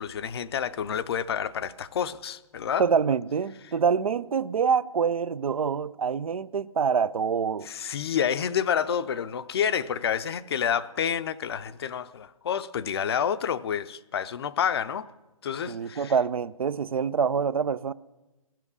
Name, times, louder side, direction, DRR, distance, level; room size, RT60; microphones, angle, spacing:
voice 1, 0.0-2.9 7.6-15.1 15.4-16.1, left 8 dB, 45° left, 0.5 m, -29 dB
voice 2, 2.8-7.7 15.7-17.9, right 6 dB, 70° right, 0.5 m, -26 dB
15.0 x 7.5 x 9.6 m
figure-of-eight pair, 135°, 19 cm